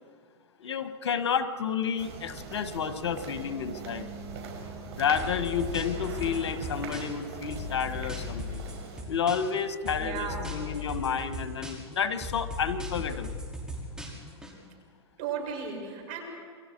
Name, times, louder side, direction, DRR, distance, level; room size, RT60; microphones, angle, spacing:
voice 1, 0.6-4.1 5.0-8.6 9.1-13.4, left 7 dB, 90° left, 10 dB, 1.4 m, -30 dB
sound 1, 2.0-9.0, right 4 dB, 70° right, 5.5 m, -41 dB
sound 2, 5.2-7.2 7.5-9.6 9.9-11.9 12.2-14.5, left 3 dB, 5° right, 5.3 m, -37 dB
voice 2, 9.9-10.5 15.2-16.2, right 7 dB, 55° right, 1 dB, 7.1 m, -35 dB
28.5 x 22.5 x 4.7 m, 2.1 s
hypercardioid pair, 120°, 14 cm